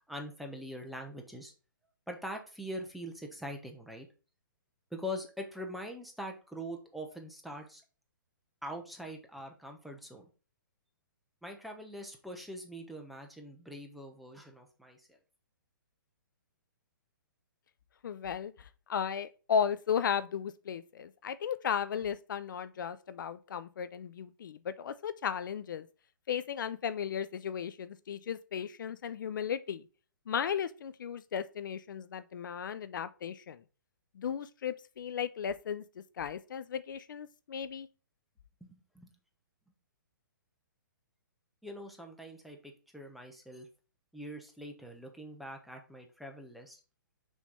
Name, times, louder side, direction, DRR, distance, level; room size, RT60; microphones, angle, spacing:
voice 1, 0.1-1.5 2.1-4.1 4.9-7.8 8.6-10.2 11.4-15.2 38.6-39.1 41.6-43.7 44.1-46.8, equal, ahead, 1.0 m, -43 dB
voice 2, 18.0-25.9 26.3-29.8 30.3-33.6 34.2-37.9, left 8 dB, 65° left, 0.5 m, -35 dB
6.2 x 3.3 x 5.5 m
hypercardioid pair, 150°, 11 cm